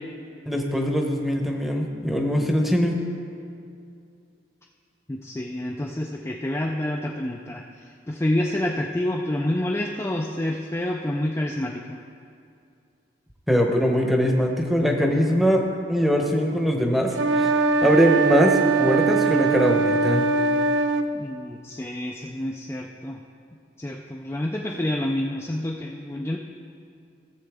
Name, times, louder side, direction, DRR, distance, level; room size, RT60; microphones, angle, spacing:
voice 1, 0.5-3.0 13.5-20.3, equal, ahead, 2 dB, 0.8 m, -22 dB
voice 2, 5.1-12.0 21.1-23.2 23.8-26.4, left 1 dB, 15° left, 0 dB, 0.4 m, -28 dB
sound 1, 17.1-21.1, right 4 dB, 85° right, 0.5 m, -21 dB
16.0 x 7.6 x 3.5 m, 2.4 s
head